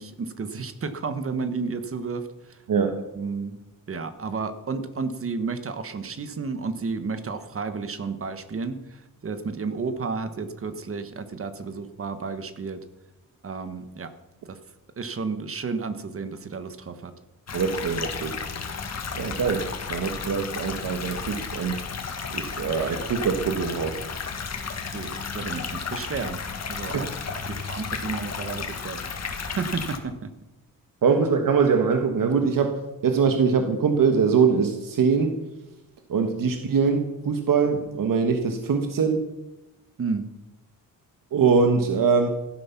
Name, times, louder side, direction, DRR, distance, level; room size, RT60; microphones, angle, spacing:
voice 1, 0.0-2.6 3.1-3.6 3.9-12.8 13.4-14.1 14.5-14.6 15.0-17.1 24.9-27.1 27.5-29.0 29.5-30.3 40.0-40.3, right 4 dB, 40° right, 10 dB, 1.3 m, -32 dB
voice 2, 2.7-3.0 17.5-18.3 19.1-21.8 22.3-24.0 26.9-27.1 31.0-35.4 36.1-39.3 41.3-42.3, right 5 dB, 65° right, 6 dB, 1.5 m, -23 dB
sound 1, 17.5-30.0, left 5 dB, 50° left, 1.9 m, -33 dB
16.5 x 12.5 x 5.9 m, 0.97 s
wide cardioid pair, 155°, 35 cm